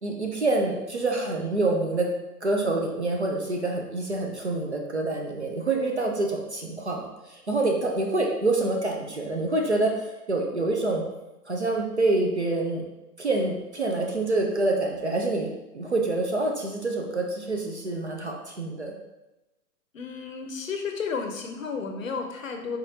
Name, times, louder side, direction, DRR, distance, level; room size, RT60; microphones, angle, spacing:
voice 1, 0.0-2.1 2.4-11.1 11.5-12.8 13.2-15.5 15.7-18.9, right 2 dB, 45° right, 1 dB, 0.4 m, -26 dB
voice 2, 19.9-22.8, left 5 dB, 55° left, 4 dB, 0.6 m, -32 dB
4.2 x 3.6 x 2.7 m, 1.0 s
hypercardioid pair, 180°, 48 cm